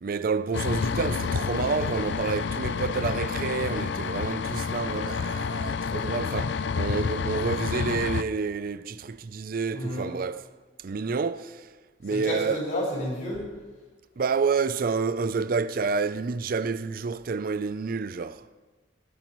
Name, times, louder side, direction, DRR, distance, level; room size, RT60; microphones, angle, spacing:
voice 1, 0.0-10.5 10.8-11.7 12.0-12.6 14.2-18.5, right 4 dB, 50° right, 0.4 m, -29 dB
sound 1, 0.5-8.2, left 5 dB, 65° left, 0.4 m, -29 dB
voice 2, 9.7-10.1 12.1-13.4, equal, 45° left, 5.7 m, -30 dB
19.0 x 14.5 x 3.1 m
head